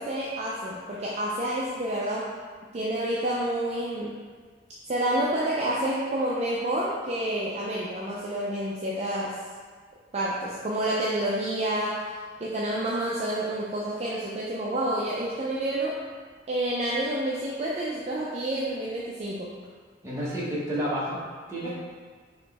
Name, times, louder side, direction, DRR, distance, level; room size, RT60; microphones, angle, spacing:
voice 1, 0.0-2.3 2.7-4.2 4.9-9.4 10.1-12.1 12.4-16.0 16.5-19.5 21.6-21.7, right 1 dB, 35° right, -6 dB, 0.4 m, -29 dB
voice 2, 20.0-21.2 21.5-21.7, equal, 15° right, -9 dB, 1.0 m, -30 dB
4.2 x 3.0 x 3.4 m, 1.5 s
head